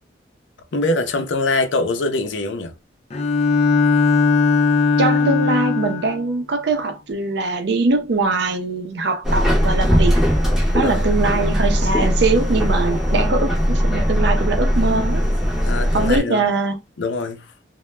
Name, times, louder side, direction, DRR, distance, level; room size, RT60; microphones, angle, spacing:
voice 1, 0.7-2.7 10.8-11.1 15.6-16.4 17.0-17.5, left 2 dB, 90° left, 0.6 m, -23 dB
Bowed string instrument, 3.1-6.2, left 4 dB, 35° left, 0.3 m, -18 dB
voice 2, 5.0-10.2 10.7-15.2 15.9-16.8, right 3 dB, 65° right, 0.5 m, -22 dB
Subway metro underground, 9.2-16.2, equal, 5° right, 0.6 m, -19 dB
2.2 x 2.0 x 3.2 m
head